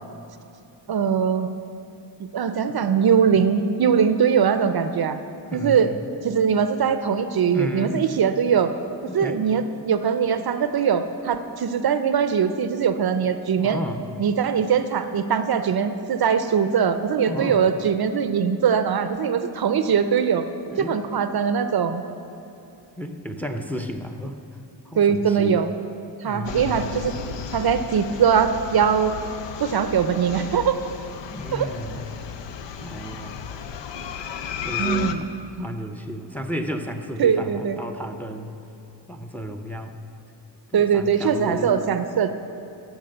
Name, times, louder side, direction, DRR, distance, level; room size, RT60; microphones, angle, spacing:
voice 1, 0.9-1.5 2.3-5.2 5.5-5.9 6.2-8.7 9.1-13.8 14.2-20.4 20.8-22.0 25.0-25.7 26.2-27.1 27.5-29.2 29.6-30.8 31.5-31.7 34.8-35.2 37.2-37.8 40.7-42.3, right 7 dB, 60° right, 10 dB, 0.6 m, -21 dB
voice 2, 5.5-6.0 7.5-8.0 9.1-9.4 13.6-14.1 15.6-15.7 17.2-17.7 20.7-21.0 23.0-24.4 24.8-25.6 26.2-26.9 31.3-32.3 32.8-33.5 34.6-35.1 35.6-38.6 39.1-40.0 40.7-41.8, equal, 5° left, 6 dB, 0.6 m, -33 dB
sound 1, 26.4-35.1, left 7 dB, 80° left, 0.6 m, -34 dB
13.0 x 5.0 x 7.7 m, 2.9 s
wide cardioid pair, 95°, 43 cm